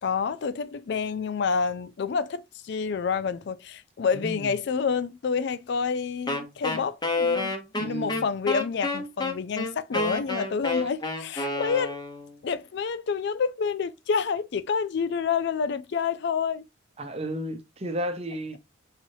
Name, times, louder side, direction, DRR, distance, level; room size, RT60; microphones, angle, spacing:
voice 1, 0.0-12.0 12.4-16.6, left 5 dB, 55° left, 0.4 m, -28 dB
voice 2, 4.1-4.5 7.8-8.2 10.7-10.9 17.0-18.6, right 1 dB, 30° right, 0.7 m, -33 dB
Wind instrument woodwind instrument, 6.3-12.3, left 2 dB, 20° left, 0.9 m, -29 dB
5.4 x 3.1 x 2.7 m
head